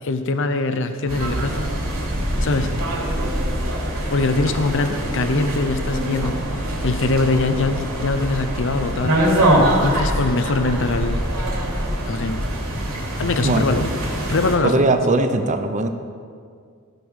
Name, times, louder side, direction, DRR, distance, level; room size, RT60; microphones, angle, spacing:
voice 1, 0.0-1.6 2.4-2.7 4.1-9.2 9.8-11.2 12.1-12.4 13.2-13.9 14.3-14.9, left 3 dB, 60° left, 8 dB, 0.7 m, -22 dB
sound 1, 1.1-14.6, right 1 dB, 75° right, 3.2 m, -23 dB
voice 2, 14.6-15.9, right 2 dB, 35° right, 7 dB, 0.8 m, -19 dB
16.0 x 6.9 x 6.4 m, 2.1 s
head